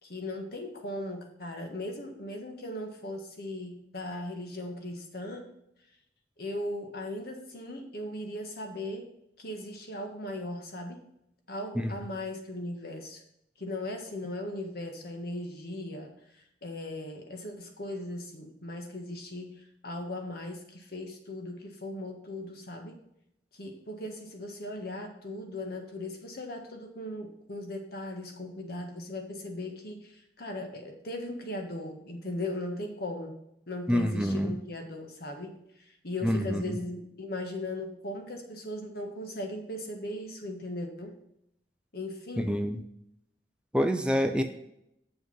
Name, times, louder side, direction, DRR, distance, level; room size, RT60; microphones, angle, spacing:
voice 1, 0.0-5.5 6.4-9.1 9.4-11.0 11.5-13.2 13.6-23.0 23.5-33.4 33.7-41.2 41.9-42.5, left 1 dB, 60° left, 4 dB, 1.6 m, -38 dB
voice 2, 33.9-34.5 36.2-36.8 42.4-42.8 43.7-44.4, equal, 5° right, 6 dB, 0.5 m, -27 dB
7.7 x 6.0 x 5.4 m, 0.77 s
head